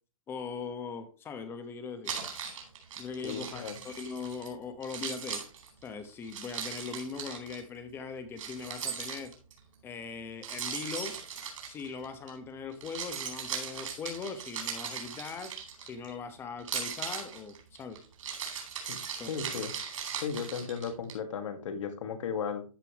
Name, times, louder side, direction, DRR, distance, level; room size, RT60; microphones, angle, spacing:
voice 1, 0.3-2.1 3.0-5.4 5.8-9.3 9.8-11.2 11.7-15.5 15.8-18.0 19.2-19.6, left 5 dB, 15° left, 10 dB, 1.0 m, -40 dB
Keys jangling, 2.0-4.5 4.8-7.6 8.4-9.6 10.4-12.3 12.7-16.1 16.6-21.1, right 7 dB, 65° right, 4.2 m, -38 dB
voice 2, 3.2-3.7 18.9-19.0 19.3-19.7 20.2-22.6, left 6 dB, 65° left, 8 dB, 1.8 m, -35 dB
13.5 x 5.5 x 2.9 m, 0.35 s
hypercardioid pair, 165°, 18 cm